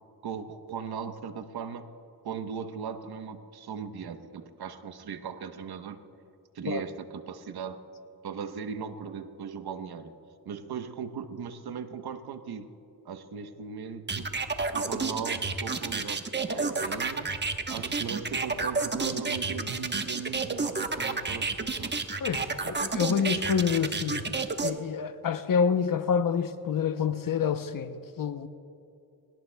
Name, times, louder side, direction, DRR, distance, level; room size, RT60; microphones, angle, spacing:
voice 1, 0.2-1.9 2.2-6.0 6.5-7.8 8.2-10.1 10.4-12.7 13.0-14.3 14.7-17.3 17.7-22.0, right 6 dB, 70° right, 1.1 m, -38 dB
sound 1, 14.1-24.7, right 4 dB, 25° right, 1.1 m, -30 dB
voice 2, 22.2-24.3 24.6-28.5, left 7 dB, 55° left, 0.8 m, -28 dB
21.5 x 18.0 x 2.3 m
cardioid pair, 65°, 39 cm